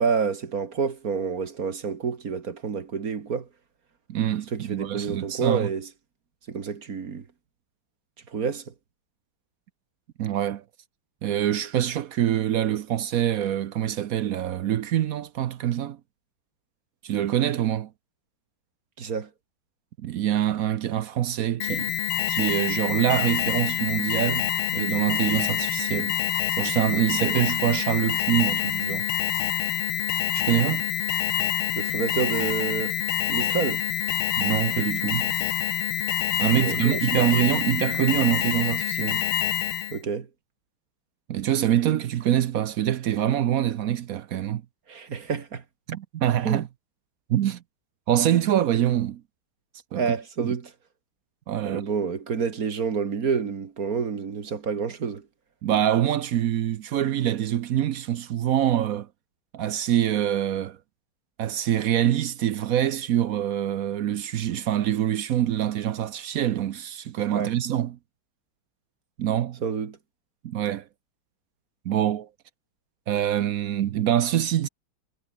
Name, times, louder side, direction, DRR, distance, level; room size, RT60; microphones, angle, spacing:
voice 1, 0.0-3.5 4.5-5.9 6.5-7.2 8.3-8.6 19.0-19.3 31.8-33.0 33.3-33.8 36.6-37.5 39.9-40.3 44.9-45.6 46.4-46.6 50.0-50.7 51.6-55.2 67.3-67.5 69.6-70.0, right 6 dB, 45° right, 1.9 m, -28 dB
voice 2, 4.1-5.7 10.2-10.6 11.2-16.0 17.0-17.9 20.0-22.0 22.3-26.1 26.6-29.1 30.3-30.8 34.4-35.3 36.4-39.2 41.3-44.6 45.9-46.7 47.3-47.6 48.1-49.2 49.9-50.1 50.4-50.5 51.5-51.8 55.6-59.1 59.5-60.8 61.4-68.0 69.2-69.6 70.4-70.8 71.8-72.3 73.1-74.7, right 11 dB, 65° right, 0.8 m, -25 dB
Alarm, 21.6-40.0, left 11 dB, 85° left, 1.9 m, -26 dB
omnidirectional pair, 2.2 m